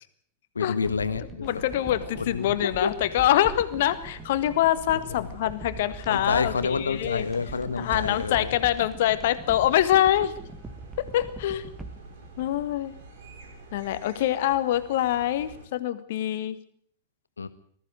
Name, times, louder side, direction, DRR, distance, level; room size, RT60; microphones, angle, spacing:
voice 1, 0.5-1.6 2.2-2.9 5.1-5.3 6.1-8.5 17.4-17.5, left 5 dB, 75° left, 12 dB, 1.6 m, -28 dB
sound 1, 0.8-13.3 13.6-13.7, right 3 dB, 15° right, 2.4 m, -43 dB
voice 2, 1.4-7.3 7.8-10.3 11.0-11.7 12.4-12.9 13.7-16.6, left 12 dB, 55° left, 12 dB, 1.7 m, -25 dB
sound 2, 1.5-15.7, right 3 dB, 55° right, 7.2 m, -47 dB
20.0 x 14.5 x 9.4 m, 0.62 s
figure-of-eight pair, 90°, 0 cm